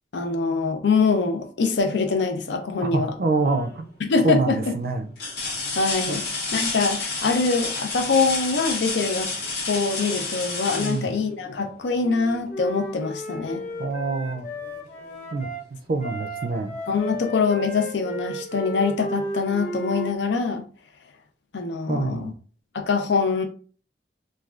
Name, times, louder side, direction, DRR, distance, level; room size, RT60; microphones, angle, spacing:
voice 1, 0.1-3.1 4.0-4.7 5.8-9.3 9.7-13.6 16.9-20.6 21.5-22.3 22.7-23.4, left 4 dB, 85° left, 0.5 m, -24 dB
voice 2, 2.8-3.9 4.2-5.1 6.1-6.2 10.8-11.1 13.8-14.5 15.3-15.5 15.9-16.8 21.9-22.3, right 3 dB, 55° right, 0.4 m, -26 dB
sound 1, 3.4-3.9 4.4-4.5 5.2-11.8 13.6-13.8 14.2-15.3 16.6-16.7, left 3 dB, 65° left, 1.0 m, -30 dB
Wind instrument woodwind instrument, 12.0-15.6 16.0-20.1, equal, 45° left, 0.7 m, -34 dB
3.2 x 2.2 x 2.4 m
head